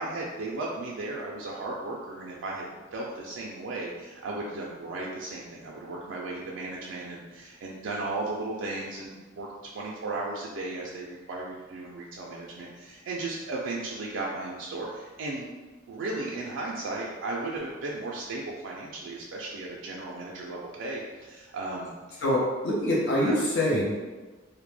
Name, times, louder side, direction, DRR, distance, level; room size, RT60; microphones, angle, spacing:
voice 1, 0.0-15.5 15.9-22.2 23.2-23.4, right 2 dB, 75° right, -3 dB, 0.3 m, -35 dB
voice 2, 22.2-23.9, left 1 dB, 65° left, -5 dB, 0.6 m, -25 dB
2.1 x 2.0 x 3.1 m, 1.3 s
head